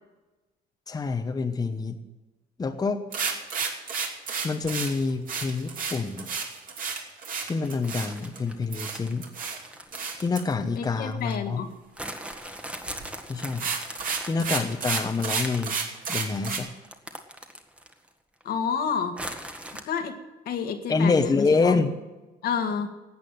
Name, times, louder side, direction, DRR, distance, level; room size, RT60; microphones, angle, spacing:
voice 1, 0.9-2.0 2.6-3.1 4.4-6.3 7.4-9.2 10.2-11.6 13.3-13.6 14.2-15.8 16.1-16.7 20.9-21.9, left 4 dB, 20° left, 6 dB, 0.9 m, -26 dB
sound 1, 3.1-8.4 8.7-9.6 9.9-10.4 12.9-13.1 13.4-16.6, right 5 dB, 55° right, 2.7 m, -31 dB
Thunder (Chips Bag), 7.6-11.4 12.0-18.1 18.4-18.5 19.2-19.8, right 1 dB, 5° right, 1.4 m, -40 dB
voice 2, 10.7-11.7 18.4-19.2 19.9-20.1 20.4-21.7 22.4-22.9, left 6 dB, 65° left, 6 dB, 1.7 m, -29 dB
13.0 x 8.3 x 9.2 m, 1.2 s
cardioid pair, 110°, 17 cm